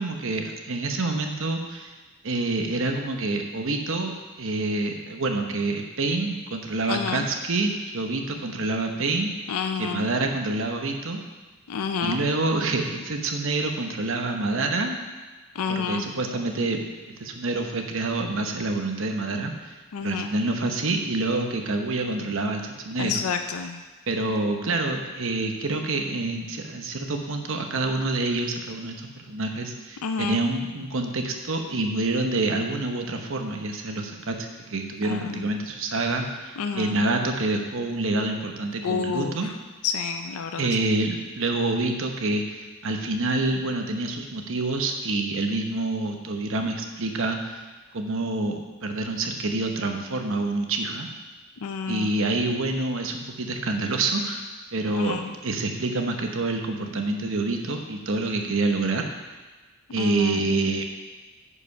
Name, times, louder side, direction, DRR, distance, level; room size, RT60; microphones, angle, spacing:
voice 1, 0.0-1.9 2.2-9.3 9.8-11.2 12.0-15.0 15.7-16.9 17.2-19.8 20.0-23.2 24.1-39.5 40.6-47.6 47.9-51.1 51.9-54.4 54.7-59.1 59.9-60.8, right 2 dB, 65° right, 4 dB, 1.0 m, -27 dB
voice 2, 6.9-7.3 9.5-10.1 11.7-12.2 15.6-16.1 19.9-20.3 23.0-23.8 30.0-30.4 35.0-35.4 36.6-37.0 38.8-39.4 39.8-40.7 51.6-52.1 54.9-55.3 60.0-60.4, left 6 dB, 90° left, 6 dB, 0.5 m, -29 dB
9.8 x 5.1 x 5.5 m, 1.3 s
head